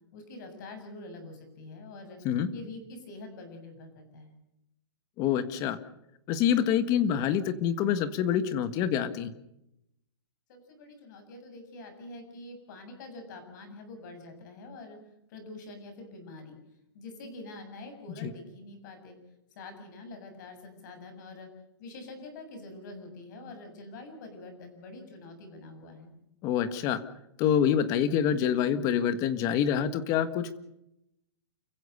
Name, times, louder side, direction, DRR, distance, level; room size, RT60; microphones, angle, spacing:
voice 1, 0.1-2.2 2.5-4.3 10.5-15.0 15.3-16.6 16.9-19.2 19.6-21.5 21.8-26.1, left 2 dB, 45° left, 6 dB, 7.5 m, -45 dB
voice 2, 5.2-5.8 6.3-9.3 18.2-18.3 26.4-27.0 27.4-30.6, left 9 dB, 25° left, 13 dB, 1.5 m, -26 dB
30.0 x 15.5 x 6.7 m, 0.82 s
hypercardioid pair, 160°, 14 cm